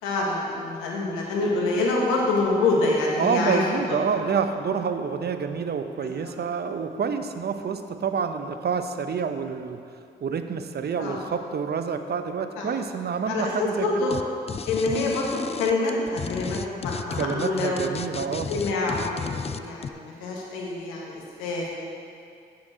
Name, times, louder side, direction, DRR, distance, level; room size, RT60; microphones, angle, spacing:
voice 1, 0.0-4.0 4.3-4.4 6.0-6.1 11.0-11.2 12.6-12.7 13.3-14.2 14.7-17.9 18.5-21.7, left 2 dB, 90° left, -2 dB, 1.5 m, -26 dB
voice 2, 3.2-9.8 10.2-13.9 17.2-18.5, right 6 dB, 55° right, 8 dB, 0.8 m, -28 dB
sound 1, 14.1-14.2 14.5-19.9, left 6 dB, 30° left, 0.4 m, -33 dB
8.9 x 7.1 x 6.3 m, 2.4 s
hypercardioid pair, 40°, 20 cm